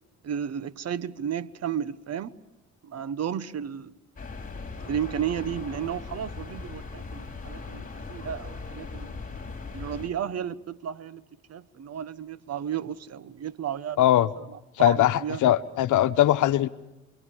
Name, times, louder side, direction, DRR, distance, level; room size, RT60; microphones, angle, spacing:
voice 1, 0.2-2.3 2.8-3.9 4.9-9.1 9.7-11.2 11.5-14.0 14.8-15.0 15.2-15.5, right 9 dB, 55° right, 1.2 m, -33 dB
sound 1, 4.2-10.1, left 4 dB, 25° left, 4.0 m, -39 dB
voice 2, 14.0-14.3 14.8-16.7, left 13 dB, 75° left, 1.0 m, -21 dB
28.5 x 23.5 x 7.1 m
cardioid pair, 90°, 30 cm